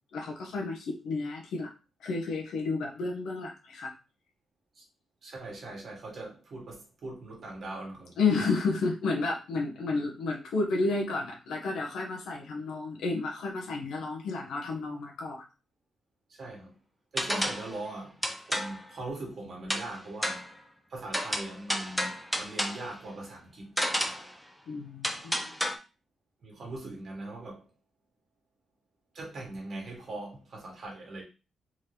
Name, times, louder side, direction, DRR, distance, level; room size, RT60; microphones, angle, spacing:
voice 1, 0.1-1.7 2.0-3.9 8.2-15.4 24.7-25.5, left 3 dB, 90° left, 0.8 m, -31 dB
voice 2, 5.2-8.2 16.3-16.8 17.1-18.2 18.5-20.5 20.9-23.8 25.3-25.4 26.4-27.7 29.1-31.2, right 2 dB, 45° right, 1.6 m, -40 dB
sound 1, 17.2-17.7 18.2-18.8 19.7-19.9 20.2-20.5 21.1-22.9 23.8-24.3 25.0-25.8, equal, ahead, 0.5 m, -31 dB
3.7 x 2.9 x 3.3 m
wide cardioid pair, 140°, 0 cm